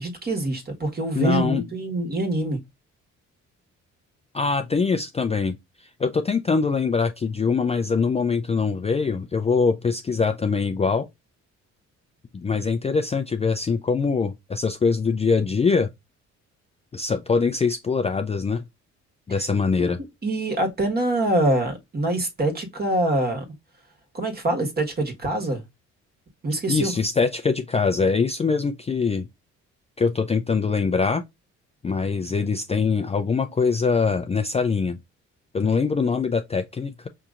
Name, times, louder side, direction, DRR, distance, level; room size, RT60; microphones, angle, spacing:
voice 1, 0.0-2.6 19.8-19.9 20.2-23.4 24.1-25.6 26.4-26.9, right 1 dB, 30° right, 1.4 m, -24 dB
voice 2, 1.1-1.6 4.3-11.1 12.3-15.9 16.9-18.6 19.3-20.0 26.7-29.3 30.0-31.2 31.8-35.0 35.5-37.1, left 5 dB, 20° left, 0.4 m, -23 dB
5.2 x 2.8 x 2.4 m
cardioid pair, 90°, 30 cm